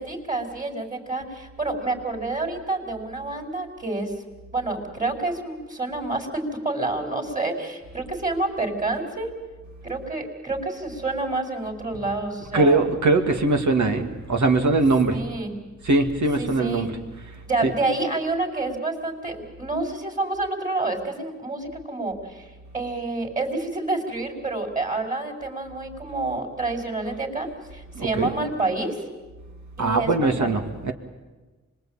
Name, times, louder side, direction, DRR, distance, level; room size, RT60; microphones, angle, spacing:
voice 1, 0.0-4.1 4.5-9.3 9.8-12.9 15.1-15.5 16.4-16.9 17.4-29.0 29.8-30.6, right 2 dB, 25° right, 0 dB, 5.1 m, -28 dB
voice 2, 12.5-15.2 15.8-17.0 17.6-17.7 27.9-28.4 29.8-30.9, right 2 dB, 70° right, 5 dB, 2.4 m, -21 dB
25.5 x 21.0 x 9.1 m, 1.3 s
cardioid pair, 50°, 30 cm